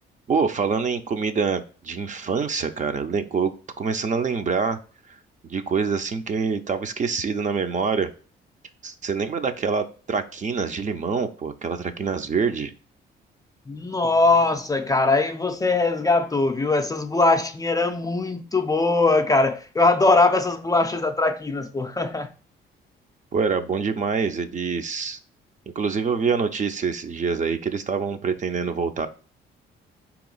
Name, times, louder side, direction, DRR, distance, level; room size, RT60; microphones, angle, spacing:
voice 1, 0.3-4.8 5.4-8.1 8.8-12.7 23.3-25.2 25.8-29.1, right 5 dB, 40° right, 0.5 m, -25 dB
voice 2, 13.7-22.3, left 3 dB, 20° left, 0.4 m, -21 dB
4.2 x 2.9 x 3.9 m
cardioid pair, 90°, 20 cm